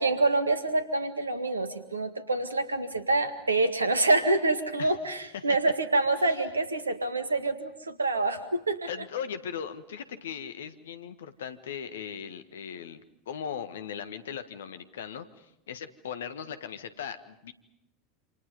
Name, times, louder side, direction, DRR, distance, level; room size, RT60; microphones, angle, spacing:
voice 1, 0.0-8.9, right 2 dB, 80° right, 10 dB, 1.9 m, -26 dB
voice 2, 8.9-17.5, left 8 dB, 65° left, 11 dB, 1.6 m, -38 dB
28.0 x 27.5 x 5.3 m, 0.87 s
figure-of-eight pair, 80°, 0 cm